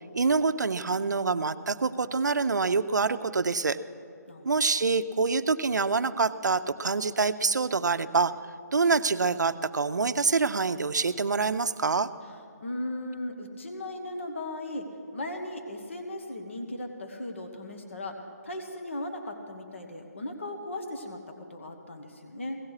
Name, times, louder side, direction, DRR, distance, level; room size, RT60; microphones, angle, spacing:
voice 1, 0.1-3.8 4.4-8.3 8.7-12.1, right 4 dB, 80° right, 10 dB, 0.6 m, -26 dB
voice 2, 12.3-22.6, left 1 dB, 45° left, 4 dB, 1.3 m, -37 dB
17.0 x 15.5 x 4.9 m, 2.7 s
hypercardioid pair, 180°, 9 cm